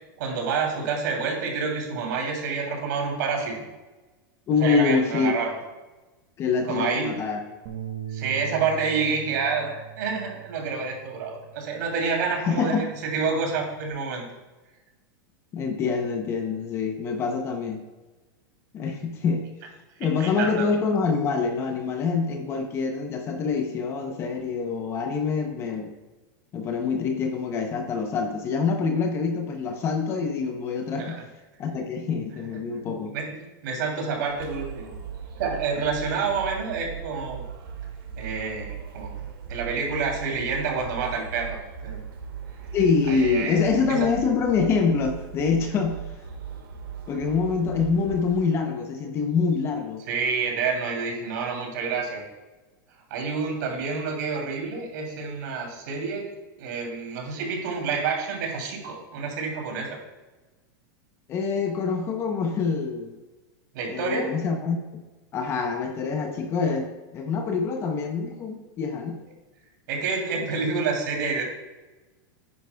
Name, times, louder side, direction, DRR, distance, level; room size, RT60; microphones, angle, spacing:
voice 1, 0.2-3.6 4.6-5.5 6.7-7.2 8.1-14.3 20.2-20.7 31.0-31.2 32.7-33.3 33.6-34.9 35.4-37.4 38.2-39.2 39.5-42.0 43.1-43.5 43.9-44.1 50.1-52.2 53.1-56.3 56.6-60.0 63.7-64.3 69.9-71.4, right 5 dB, 60° right, 0 dB, 2.9 m, -28 dB
voice 2, 4.5-5.3 6.4-7.4 12.4-12.9 15.5-17.8 18.7-19.5 20.0-25.9 26.5-31.2 31.6-33.1 42.7-46.0 47.1-50.0 61.3-63.1 63.9-65.0 65.3-69.2, left 5 dB, 20° left, 5 dB, 0.7 m, -25 dB
Bass guitar, 7.7-12.1 12.5-13.9, right 10 dB, 45° right, 1.1 m, -41 dB
sound 1, 34.3-48.6, right 7 dB, 80° right, 2.1 m, -38 dB
9.9 x 9.5 x 2.3 m, 1.2 s
supercardioid pair, 165°, 11 cm